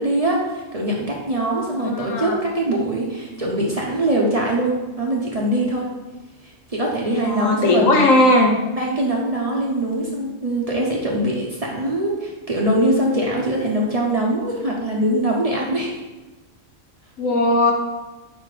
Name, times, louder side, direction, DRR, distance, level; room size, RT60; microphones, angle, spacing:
voice 1, 0.0-5.9 6.4-8.1 8.7-16.0, right 1 dB, 35° right, -2 dB, 0.7 m, -22 dB
voice 2, 1.8-2.4 7.2-8.6 17.2-17.7, left 1 dB, 85° left, 2 dB, 1.3 m, -17 dB
4.7 x 4.2 x 4.9 m, 1.1 s
omnidirectional pair, 1.3 m